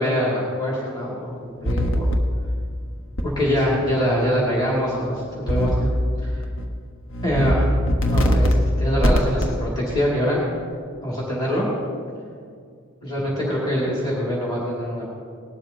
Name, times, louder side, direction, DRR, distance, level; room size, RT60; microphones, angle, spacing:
voice 1, 0.0-2.1 3.4-5.9 6.2-6.4 7.2-7.7 8.1-10.4 11.0-11.7 13.0-15.1, equal, 20° left, -6 dB, 2.6 m, -24 dB
sound 1, 1.7-2.2 3.2-3.3 5.5-5.9 6.4-6.7 7.1-7.5 7.9-8.5 9.0-9.5, equal, 70° left, 1.2 m, -20 dB
19.5 x 12.5 x 2.9 m, 2.2 s
head